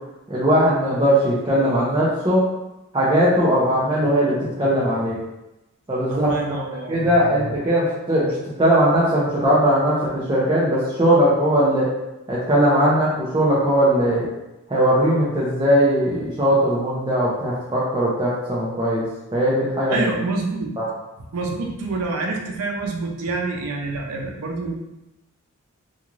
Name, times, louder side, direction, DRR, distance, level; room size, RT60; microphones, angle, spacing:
voice 1, 0.3-2.4 2.9-5.2 5.9-6.3 6.9-11.9 12.3-14.3 14.7-20.0, equal, 20° right, -9 dB, 0.5 m, -19 dB
voice 2, 6.1-7.5 19.9-20.7 21.3-24.8, right 3 dB, 85° right, 0 dB, 0.5 m, -27 dB
2.5 x 2.3 x 3.0 m, 0.97 s
head